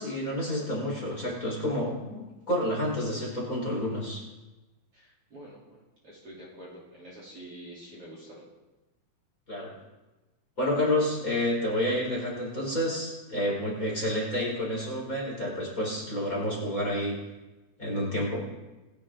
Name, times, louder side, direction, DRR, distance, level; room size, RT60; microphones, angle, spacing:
voice 1, 0.0-4.2 9.5-9.7 10.6-17.2 17.8-18.4, left 1 dB, 20° left, -3 dB, 4.5 m, -29 dB
voice 2, 4.9-8.4, right 1 dB, 35° right, -5 dB, 4.0 m, -47 dB
27.5 x 11.0 x 3.8 m, 1.1 s
omnidirectional pair, 4.5 m